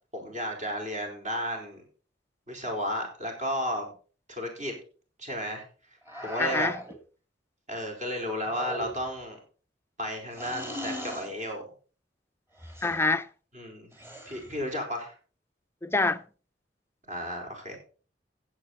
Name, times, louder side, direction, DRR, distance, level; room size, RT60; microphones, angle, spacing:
voice 1, 0.1-1.8 2.5-3.9 4.3-4.7 5.2-5.6 6.2-6.7 7.7-9.4 10.0-11.6 13.5-13.9 14.3-15.1 17.1-17.8, equal, 40° right, 4.5 m, -33 dB
sound 1, 6.1-7.0 8.5-9.2 10.3-11.3 12.6-13.0 13.9-14.6, equal, 15° right, 2.8 m, -39 dB
voice 2, 6.4-6.8 12.8-13.3 15.8-16.2, left 3 dB, 15° left, 0.6 m, -25 dB
15.0 x 8.4 x 4.2 m
head